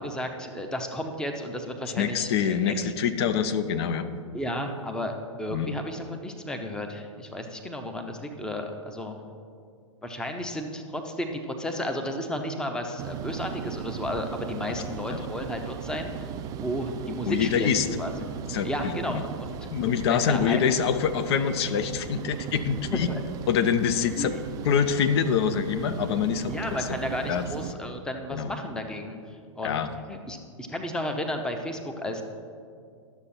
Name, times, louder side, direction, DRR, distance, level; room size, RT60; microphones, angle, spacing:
voice 1, 0.0-2.9 4.3-9.2 10.0-16.3 16.6-17.7 18.0-18.1 18.6-19.6 20.1-20.7 22.9-23.2 24.1-24.4 26.5-29.8 30.1-32.2, left 1 dB, 5° left, 4 dB, 0.7 m, -33 dB
voice 2, 2.0-4.1 5.5-5.7 15.1-15.2 17.3-17.9 18.5-19.2 19.7-23.1 23.5-24.3 24.6-26.9 27.3-27.4 28.3-28.5 29.6-29.9, left 7 dB, 55° left, 10 dB, 0.6 m, -25 dB
sound 1, 13.0-27.7, right 8 dB, 25° right, 0.3 m, -37 dB
11.5 x 6.9 x 4.3 m, 2.3 s
hypercardioid pair, 110°, 16 cm